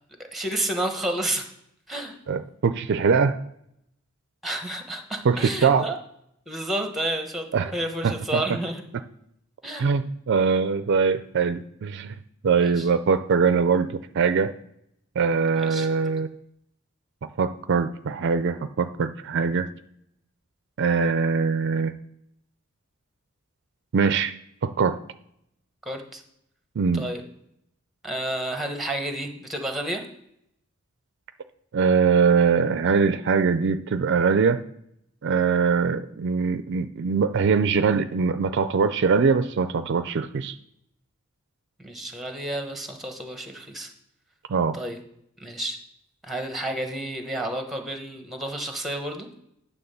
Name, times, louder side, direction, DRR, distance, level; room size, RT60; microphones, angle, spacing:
voice 1, 0.3-1.5 1.9-2.2 4.4-6.0 6.5-7.4 7.7-8.8 9.6-9.9 12.6-12.9 15.5-15.9 25.8-26.2 26.9-27.2 28.0-30.0 41.8-43.9 44.7-45.0 45.4-45.8 46.2-49.3, right 1 dB, ahead, 5 dB, 1.1 m, -30 dB
voice 2, 2.3-3.4 5.2-5.8 7.5-7.7 8.0-8.4 9.8-12.2 12.4-14.5 15.2-16.3 17.4-19.7 20.8-21.9 23.9-24.3 24.6-25.0 26.8-27.1 31.7-34.6 35.2-40.5 44.5-44.8, right 5 dB, 55° right, 11 dB, 0.4 m, -22 dB
9.4 x 3.5 x 6.8 m, 0.76 s
head